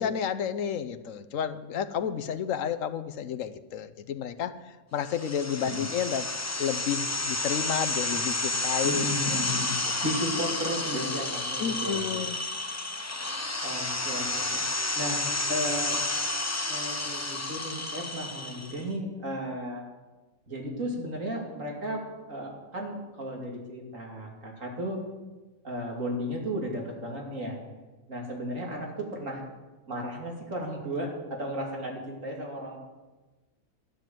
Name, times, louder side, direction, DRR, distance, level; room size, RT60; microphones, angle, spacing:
voice 1, 0.0-4.6 4.9-6.3 6.6-9.1 11.6-12.4, left 8 dB, 65° left, 12 dB, 1.1 m, -31 dB
sound 1, 5.1-18.8, left 2 dB, 15° left, 0.6 m, -31 dB
voice 2, 8.8-9.7 10.0-12.3 13.6-15.2 15.5-16.0 16.6-19.8 20.5-22.0 22.3-25.0 25.6-27.6 28.1-29.4 29.9-32.8, equal, 60° right, -1 dB, 3.2 m, -34 dB
13.0 x 10.5 x 7.6 m, 1.2 s
omnidirectional pair, 1.5 m